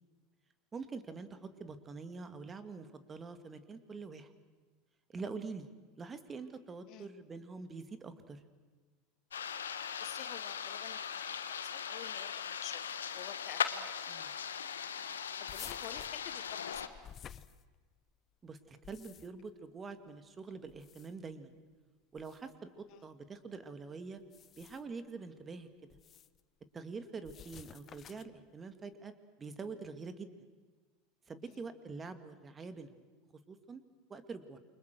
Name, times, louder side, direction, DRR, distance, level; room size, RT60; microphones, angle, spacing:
voice 1, 0.7-4.3 5.1-5.7 6.0-8.4 14.1-14.3 18.4-21.5 22.1-24.2 24.6-25.7 26.7-29.1 29.4-30.3 31.3-32.9 33.5-33.8 34.1-34.6, right 4 dB, 25° right, 10 dB, 2.4 m, -45 dB
sound 1, 9.3-16.9, left 7 dB, 80° left, 1.5 m, -39 dB
voice 2, 10.0-12.8 13.1-13.9 15.4-17.1 22.9-23.0 31.4-31.6, left 14 dB, 50° left, 13 dB, 1.3 m, -50 dB
sound 2, 15.5-18.1 18.7-19.5 20.6-21.3 22.2-22.4 24.2-25.0 25.9-26.4 27.2-28.4, left 9 dB, 35° left, 1.0 m, -52 dB
29.0 x 25.0 x 6.3 m, 1.4 s
figure-of-eight pair, 80°, 0 cm